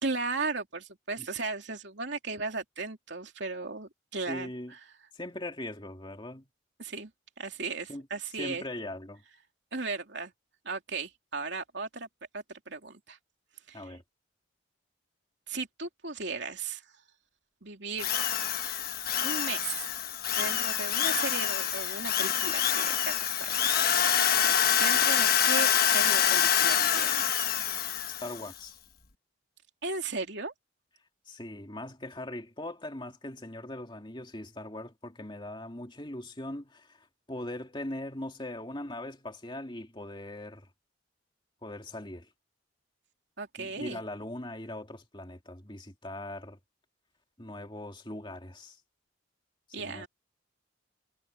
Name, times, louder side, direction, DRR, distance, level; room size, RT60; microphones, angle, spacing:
voice 1, 0.0-4.5 6.8-7.1 7.4-8.6 9.7-10.3 10.6-12.1 12.3-13.2 13.7-13.9 15.5-16.8 17.6-18.1 19.2-19.9 20.4-23.5 24.8-27.5 29.8-30.5 43.4-44.0 49.7-50.1, right 4 dB, 60° right, 3.2 m, -36 dB
voice 2, 4.3-4.7 5.1-6.5 7.9-8.1 8.4-9.2 13.7-14.0 28.2-28.8 31.3-40.7 41.6-42.3 43.6-46.6 47.4-48.8 49.8-50.1, left 1 dB, 25° left, 2.5 m, -40 dB
Drill, 18.0-28.4, left 9 dB, 50° left, 1.3 m, -26 dB
head